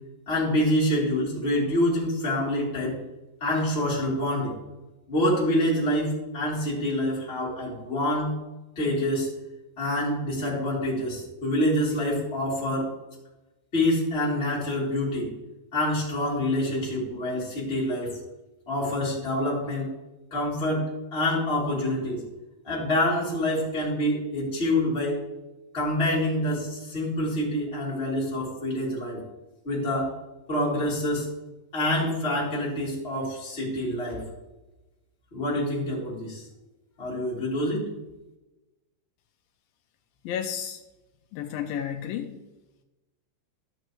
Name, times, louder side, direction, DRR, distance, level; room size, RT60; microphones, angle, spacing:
voice 1, 0.3-3.0 3.4-4.5 5.1-8.3 8.8-9.3 9.8-12.9 13.7-15.3 15.7-18.1 18.7-19.9 20.3-22.2 22.6-25.2 25.7-29.2 29.6-30.1 30.5-31.3 31.7-34.2 35.3-36.4 37.0-37.8, left 1 dB, 20° left, -6 dB, 2.7 m, -26 dB
voice 2, 40.2-40.8 41.3-42.4, left 9 dB, 80° left, 5 dB, 2.4 m, -32 dB
13.5 x 6.5 x 3.1 m, 1.0 s
omnidirectional pair, 4.1 m